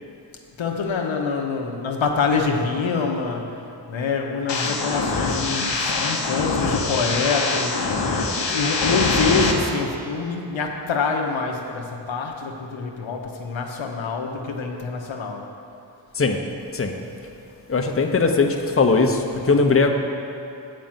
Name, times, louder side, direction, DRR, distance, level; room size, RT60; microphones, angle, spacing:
voice 1, 0.6-3.6 3.9-8.1 8.5-15.5, left 4 dB, 90° left, 2 dB, 0.8 m, -26 dB
sound 1, 4.5-9.5, left 3 dB, 65° left, 1.0 m, -23 dB
voice 2, 17.7-19.9, left 4 dB, 30° left, 4 dB, 0.8 m, -19 dB
7.5 x 5.2 x 7.3 m, 2.7 s
cardioid pair, 45°, 45 cm